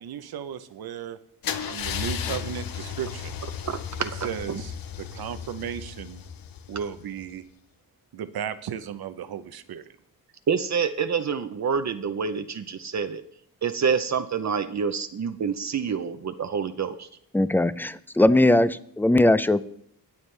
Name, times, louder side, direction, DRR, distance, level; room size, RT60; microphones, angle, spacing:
voice 1, 0.0-1.2 1.7-3.3 4.2-6.2 6.7-7.4 8.1-9.8, right 8 dB, 85° right, 11 dB, 0.8 m, -35 dB
Car / Engine starting / Idling, 1.4-7.3, left 8 dB, 70° left, 0.8 m, -34 dB
voice 2, 10.5-13.2 13.6-17.1, right 6 dB, 50° right, 9 dB, 0.6 m, -27 dB
voice 3, 17.3-19.6, left 1 dB, 5° left, 15 dB, 0.5 m, -20 dB
18.0 x 7.3 x 3.3 m, 0.67 s
cardioid pair, 75°, 36 cm